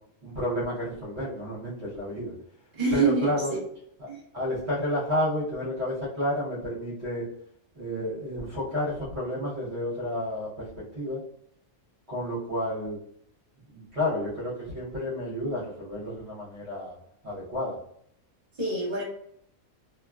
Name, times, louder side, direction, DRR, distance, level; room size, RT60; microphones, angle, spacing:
voice 1, 0.2-2.3 2.9-3.5 4.0-4.1 4.3-7.2 7.7-10.7 10.9-11.2 12.1-13.0 13.7-16.9 17.2-17.7, left 1 dB, 55° right, -8 dB, 1.3 m, -30 dB
voice 2, 2.7-3.6 4.1-4.2 18.5-19.0, right 4 dB, 25° right, -8 dB, 1.1 m, -26 dB
3.0 x 2.2 x 2.3 m, 0.69 s
omnidirectional pair, 1.5 m